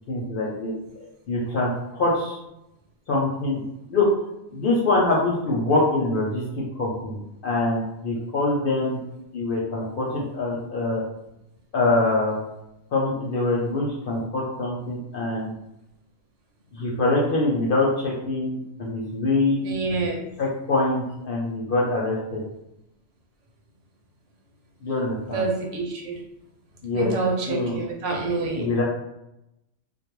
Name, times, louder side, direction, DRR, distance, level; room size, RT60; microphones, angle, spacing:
voice 1, 0.1-0.7 1.3-2.4 3.1-3.6 3.9-4.1 4.5-9.0 9.3-11.0 11.7-12.4 12.9-15.5 16.7-19.6 20.4-22.4 24.8-25.4 26.8-27.1 27.5-27.8 28.5-28.8, left 2 dB, 60° left, -4 dB, 0.6 m, -24 dB
voice 2, 19.6-20.2 25.3-26.2 26.9-28.7, right 3 dB, 75° right, -1 dB, 1.0 m, -27 dB
2.2 x 2.1 x 3.0 m, 0.86 s
omnidirectional pair, 1.3 m